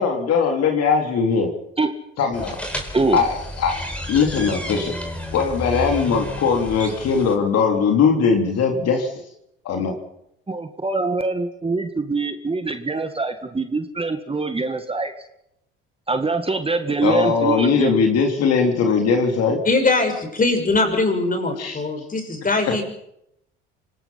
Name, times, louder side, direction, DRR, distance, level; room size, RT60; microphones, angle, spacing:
voice 1, 0.0-1.5 2.2-2.6 3.1-4.9 5.3-9.1 9.7-10.0 17.0-19.6 21.6-21.8, left 5 dB, 60° left, 4 dB, 3.6 m, -20 dB
sound 1, 2.3-7.3, equal, 5° left, 4.8 m, -31 dB
voice 2, 10.5-15.1 16.1-17.9, right 3 dB, 20° right, 7 dB, 2.1 m, -23 dB
voice 3, 19.6-22.8, left 3 dB, 30° left, 5 dB, 6.4 m, -21 dB
26.5 x 18.0 x 6.0 m, 0.79 s
hypercardioid pair, 65°, 29 cm